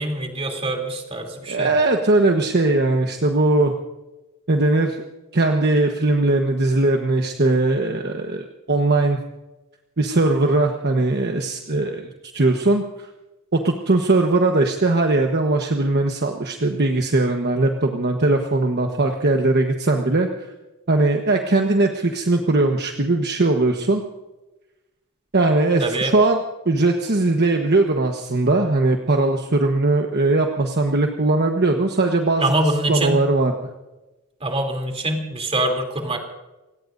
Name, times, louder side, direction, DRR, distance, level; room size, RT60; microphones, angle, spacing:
voice 1, 0.0-1.8 25.8-26.1 32.4-33.2 34.4-36.2, right 1 dB, 25° right, 3 dB, 3.2 m, -24 dB
voice 2, 1.5-3.7 4.5-5.0 5.3-9.2 10.0-12.8 13.5-20.3 20.9-24.0 25.3-26.4 26.6-32.4 32.9-33.5, right 2 dB, 50° right, 3 dB, 1.2 m, -19 dB
29.0 x 18.0 x 2.7 m, 1.1 s
head